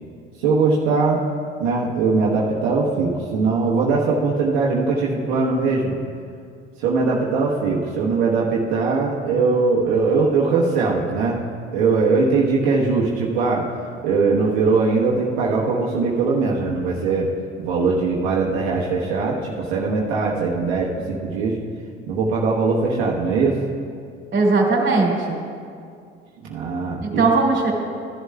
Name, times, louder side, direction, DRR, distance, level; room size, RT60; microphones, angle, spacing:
voice 1, 0.4-1.2 1.6-5.9 6.8-11.4 11.7-13.6 14.0-17.3 17.6-21.6 22.1-23.6 26.4-27.2, right 4 dB, 80° right, -4 dB, 1.2 m, -20 dB
voice 2, 24.3-25.4 27.0-27.7, right 3 dB, 35° right, 0 dB, 2.9 m, -19 dB
15.0 x 11.0 x 2.3 m, 2.3 s
hypercardioid pair, 60°, 31 cm